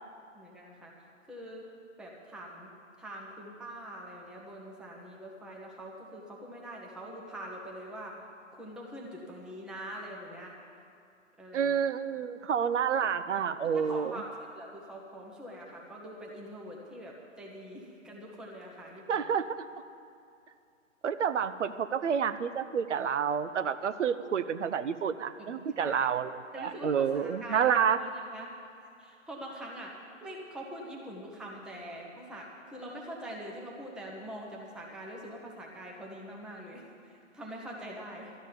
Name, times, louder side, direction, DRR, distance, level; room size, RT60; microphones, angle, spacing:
voice 1, 0.3-0.9 1.2-1.6 2.0-2.7 3.0-8.2 8.5-10.5 11.4-11.8 13.6-19.0 25.4-26.0 26.5-28.5 29.0-38.3, equal, ahead, -2 dB, 0.8 m, -44 dB
voice 2, 11.5-14.2 19.1-19.6 21.0-28.0, right 7 dB, 65° right, 12 dB, 0.7 m, -29 dB
12.5 x 6.3 x 9.3 m, 2.5 s
figure-of-eight pair, 130°, 39 cm